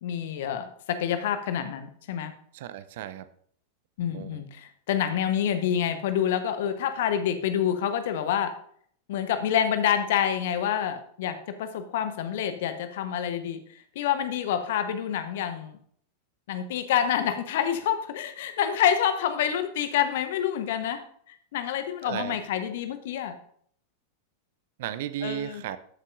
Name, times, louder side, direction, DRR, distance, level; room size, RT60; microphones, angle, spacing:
voice 1, 0.0-2.3 4.0-8.5 9.1-13.6 13.9-15.8 16.5-21.0 21.3-23.3 25.2-25.6, left 9 dB, 55° left, 9 dB, 1.0 m, -27 dB
voice 2, 2.5-3.3 4.1-4.4 22.1-22.4 24.8-25.8, right 11 dB, 55° right, 14 dB, 0.6 m, -34 dB
13.0 x 8.1 x 2.6 m, 0.62 s
figure-of-eight pair, 90°, 0 cm